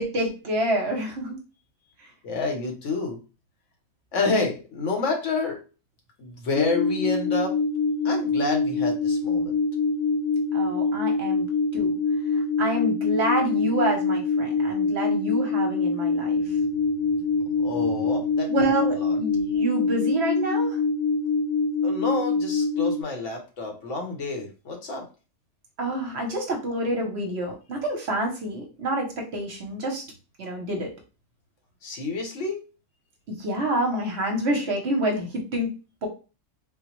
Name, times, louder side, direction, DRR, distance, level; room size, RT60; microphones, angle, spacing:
voice 1, 0.0-1.4 2.0-2.1 10.5-11.5 11.7-12.0 12.3-16.4 18.5-20.8 25.8-30.0 30.4-30.9 33.3-35.7 36.0-36.1, right 1 dB, 60° right, 2 dB, 0.9 m, -27 dB
voice 2, 2.2-3.2 4.1-5.6 6.2-7.5 8.0-9.6 16.5-16.6 17.4-19.2 21.8-25.1 31.8-32.6, left 3 dB, 65° left, 2 dB, 1.1 m, -29 dB
sound 1, 6.6-23.0, left 3 dB, 85° left, 1.0 m, -25 dB
3.7 x 2.0 x 2.9 m, 0.32 s
omnidirectional pair, 1.4 m